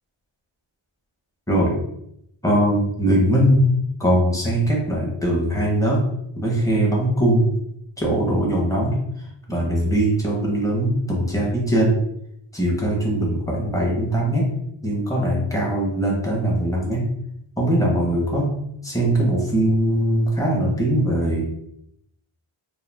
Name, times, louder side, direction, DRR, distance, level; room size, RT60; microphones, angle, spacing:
voice 1, 2.4-3.6 4.0-6.0 6.4-7.5 8.0-8.9 9.5-11.9 12.5-14.4 14.8-17.1 17.6-18.5 18.8-21.4, right 1 dB, 5° left, -3 dB, 0.7 m, -21 dB
2.3 x 2.2 x 3.2 m, 0.77 s
wide cardioid pair, 105°, 50 cm